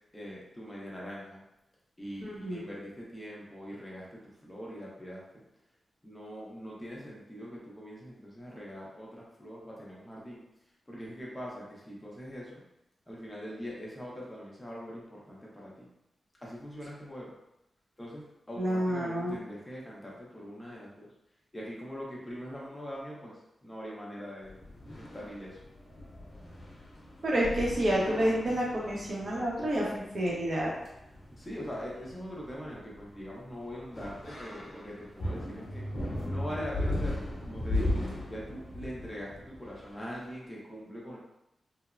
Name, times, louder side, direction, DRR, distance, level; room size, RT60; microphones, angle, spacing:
voice 1, 0.1-1.4 2.0-5.2 6.0-10.4 10.9-12.6 13.1-15.9 16.4-17.3 18.0-21.1 21.5-24.6 24.9-25.6 31.3-35.8 36.2-38.0 38.3-41.2, equal, 10° left, -5 dB, 0.7 m, -42 dB
voice 2, 2.2-2.6 18.6-19.4 27.2-30.7, right 1 dB, 50° right, -4 dB, 0.8 m, -29 dB
sound 1, 24.4-40.1, left 1 dB, 50° left, 0.7 m, -38 dB
3.1 x 2.0 x 2.4 m, 0.87 s
wide cardioid pair, 130°, 0 cm